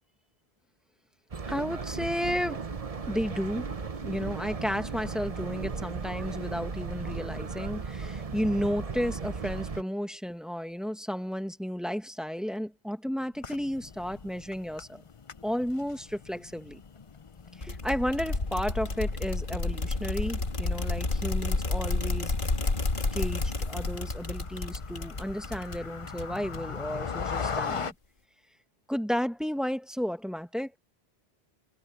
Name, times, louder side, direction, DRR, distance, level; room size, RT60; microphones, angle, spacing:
sound 1, 1.3-9.8, right 4 dB, 35° right, 1.0 m, -36 dB
voice 1, 1.5-2.6 3.1-3.7 4.0-15.0 15.4-16.8 17.6-22.5 23.1-27.9 28.9-30.7, equal, ahead, 1.4 m, -33 dB
sound 2, 13.4-27.9, left 5 dB, 35° left, 0.7 m, -41 dB
sound 3, 17.6-26.8, left 3 dB, 50° left, 1.8 m, -31 dB
omnidirectional pair, 1.1 m